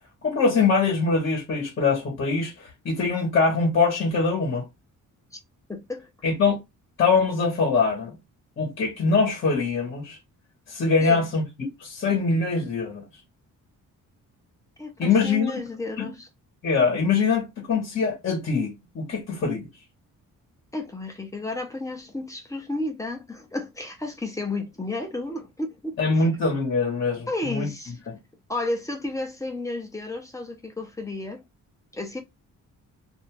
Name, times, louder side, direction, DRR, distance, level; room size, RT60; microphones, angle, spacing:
voice 1, 0.2-4.7 6.2-6.6 7.0-8.2 8.6-10.2 10.7-13.0 15.0-15.6 16.0-16.1 16.6-19.7 26.0-27.7, left 4 dB, 35° left, 1.1 m, -23 dB
voice 2, 5.7-6.3 11.0-11.2 14.8-16.3 20.7-26.3 27.3-27.9 28.5-31.4 31.9-32.2, left 2 dB, 10° left, 0.7 m, -32 dB
2.6 x 2.4 x 2.9 m
wide cardioid pair, 140°, 33 cm